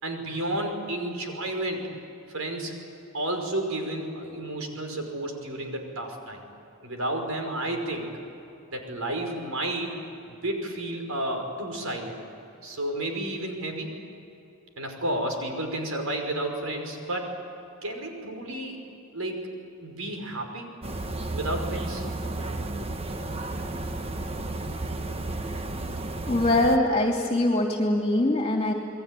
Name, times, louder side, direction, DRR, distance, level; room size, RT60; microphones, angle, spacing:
voice 1, 0.0-1.9 2.3-2.8 3.1-6.4 6.8-8.1 8.7-10.0 10.3-12.2 12.6-13.9 14.8-17.4 17.8-18.8 19.1-19.5 19.8-20.7 21.3-22.0, right 1 dB, 85° right, 3 dB, 5.5 m, -31 dB
sound 1, 20.8-26.8, right 2 dB, 30° right, 1.2 m, -32 dB
voice 2, 26.3-28.7, left 1 dB, 25° left, 1 dB, 2.6 m, -23 dB
29.5 x 21.5 x 9.2 m, 2.9 s
head